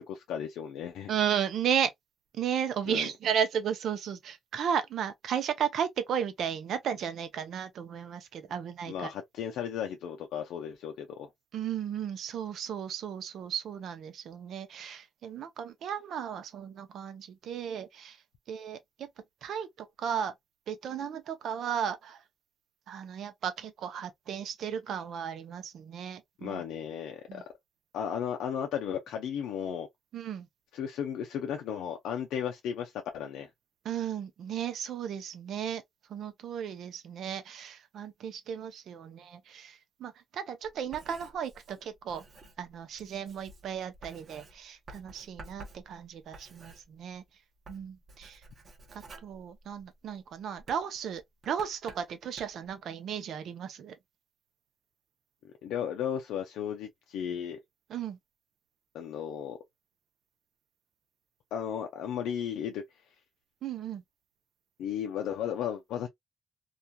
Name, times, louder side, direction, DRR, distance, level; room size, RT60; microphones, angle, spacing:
voice 1, 0.0-1.1 2.9-3.1 8.9-11.3 26.4-27.4 27.9-29.9 30.7-33.5 55.6-57.6 58.9-59.6 61.5-62.8 64.8-66.1, left 8 dB, 85° left, 0.4 m, -35 dB
voice 2, 1.1-1.9 2.3-9.1 11.5-18.2 18.5-18.8 19.4-20.3 20.7-22.2 22.9-26.6 27.3-27.4 30.1-30.5 33.8-35.8 36.1-42.2 42.6-47.2 47.7-48.4 48.9-54.0 57.9-58.2 63.6-64.0, right 8 dB, 70° right, 0.5 m, -34 dB
Writing, 40.6-47.3 47.6-50.1 50.6-52.7, right 2 dB, 50° right, 0.8 m, -52 dB
2.4 x 2.2 x 2.6 m
cardioid pair, 90°, 0 cm